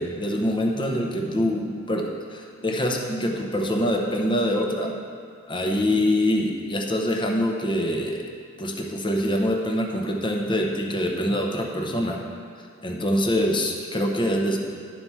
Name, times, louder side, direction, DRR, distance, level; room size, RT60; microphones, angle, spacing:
voice 1, 0.0-4.9 5.5-8.2 8.6-12.2 12.8-14.6, equal, 25° left, 1 dB, 0.9 m, -25 dB
11.5 x 4.7 x 5.6 m, 2.2 s
head